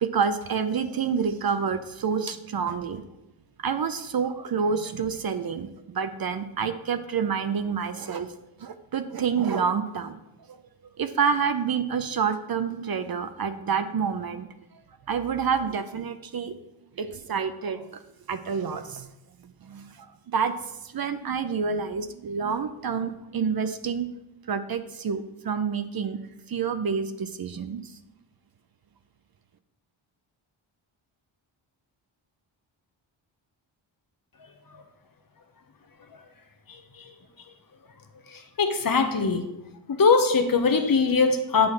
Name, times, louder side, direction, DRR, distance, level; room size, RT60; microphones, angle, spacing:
voice 1, 0.0-3.0 3.6-8.3 8.6-10.2 11.0-14.5 15.1-16.5 17.0-18.0 18.3-19.1 19.6-20.5 20.9-24.1 24.5-26.2 26.5-27.9, right 6 dB, 50° right, 10 dB, 0.6 m, -28 dB
voice 2, 38.6-39.4 39.9-41.7, left 4 dB, 45° left, 6 dB, 0.9 m, -21 dB
8.6 x 5.6 x 3.2 m, 0.92 s
cardioid pair, 70°, 49 cm